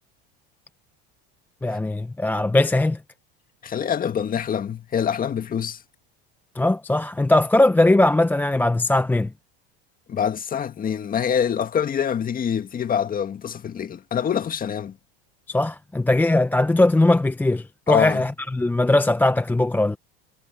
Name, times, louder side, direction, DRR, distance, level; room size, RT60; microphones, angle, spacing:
voice 1, 1.6-3.0 6.6-9.3 15.5-20.0, left 2 dB, 5° left, 0.6 m, -20 dB
voice 2, 3.6-5.8 10.1-15.0 17.9-18.2, left 8 dB, 30° left, 2.0 m, -25 dB
supercardioid pair, 125°, 31 cm